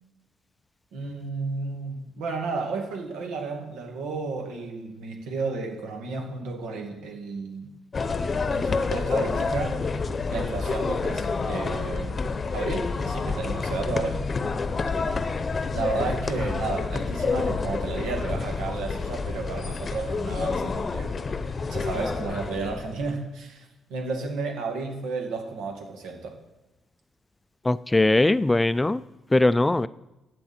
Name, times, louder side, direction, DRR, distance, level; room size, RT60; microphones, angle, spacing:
voice 1, 0.9-7.7 8.5-9.8 10.3-12.2 12.5-14.2 15.7-21.1 21.7-26.4, right 3 dB, 90° right, 2 dB, 2.3 m, -32 dB
sound 1, 7.9-23.1, left 4 dB, 35° left, 0.8 m, -28 dB
voice 2, 27.6-29.0 29.3-29.9, left 2 dB, 15° left, 16 dB, 0.3 m, -20 dB
14.5 x 8.9 x 4.4 m, 1.0 s
cardioid pair, 90°, 0 cm